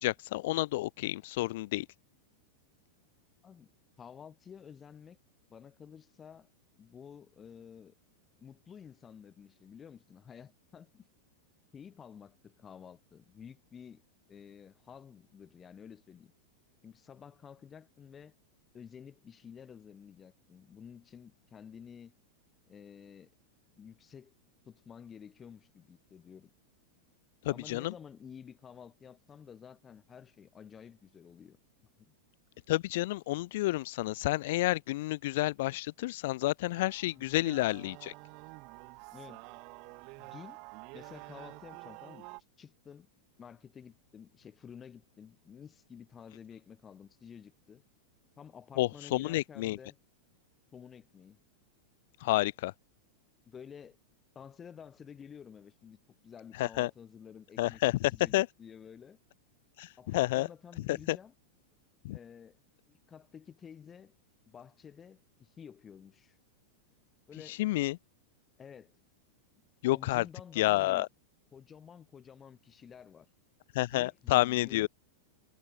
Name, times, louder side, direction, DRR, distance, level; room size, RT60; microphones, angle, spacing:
voice 1, 0.0-1.9 27.4-27.9 32.7-38.1 48.8-49.8 52.2-52.7 56.6-56.9 57.6-58.5 59.8-60.5 60.9-61.2 62.0-62.2 67.5-68.0 69.8-70.2 70.6-71.1 73.7-74.9, left 18 dB, 65° left, 0.7 m, -30 dB
voice 2, 4.0-5.2 5.5-6.5 6.8-7.9 8.4-11.1 11.7-14.0 14.3-16.3 16.8-18.3 18.7-22.2 22.7-23.3 23.7-24.3 24.6-26.5 27.5-31.6 32.0-32.1 37.2-37.4 39.1-39.4 40.2-40.6 40.9-42.3 42.6-43.1 43.4-47.8 48.4-50.0 50.7-51.4 53.5-54.0 54.3-57.8 58.1-59.2 60.0-61.3 62.1-62.6 62.9-64.1 64.5-66.4 67.3-67.6 68.6-69.0 69.8-71.0 71.5-73.3 73.9-74.9, left 7 dB, 25° left, 3.2 m, -51 dB
sound 1, 36.8-42.4, right 31 dB, 50° right, 5.0 m, -49 dB
hypercardioid pair, 110°, 0 cm